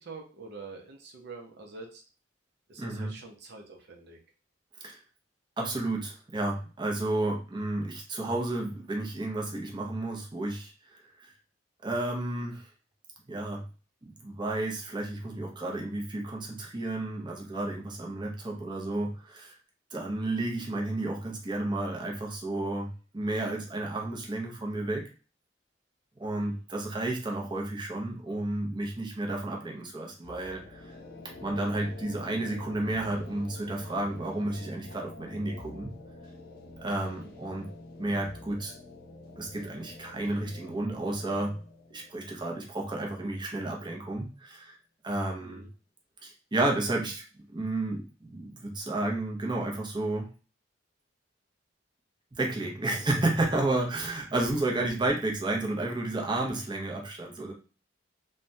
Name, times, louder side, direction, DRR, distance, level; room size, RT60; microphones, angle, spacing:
voice 1, 0.0-2.0 2.7-4.2 20.2-20.5 26.3-26.6 37.1-37.4 45.4-45.7, right 3 dB, 60° right, 2 dB, 0.6 m, -46 dB
voice 2, 2.8-3.1 4.8-5.0 5.6-11.3 11.8-12.7 13.3-13.6 14.0-19.6 19.9-25.0 26.2-30.9 31.4-35.9 36.8-37.7 38.0-38.7 39.4-41.6 41.9-44.8 45.0-45.7 46.2-47.2 47.5-50.3 52.3-57.5, right 2 dB, 25° right, 0 dB, 0.6 m, -32 dB
sound 1, 30.2-43.9, left 2 dB, 50° left, 0.5 m, -48 dB
3.2 x 2.2 x 2.6 m, 0.37 s
head